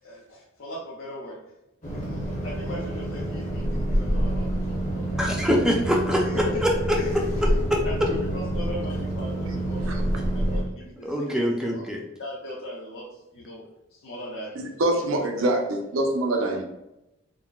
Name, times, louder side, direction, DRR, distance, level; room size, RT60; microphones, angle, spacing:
voice 1, 0.0-1.4 1.9-5.2 6.0-6.6 7.0-7.2 7.8-11.1 11.4-11.9 12.2-15.0 15.4-15.5, equal, 85° left, -7 dB, 0.7 m, -39 dB
sound 1, 1.8-10.6, right 1 dB, 40° left, 0.8 m, -27 dB
voice 2, 5.2-7.0 7.7-7.8 11.0-12.0, equal, 5° right, 0 dB, 0.4 m, -24 dB
voice 3, 14.6-15.6 15.9-16.6, right 1 dB, 70° right, 2 dB, 0.5 m, -24 dB
3.8 x 2.0 x 2.3 m, 0.89 s
head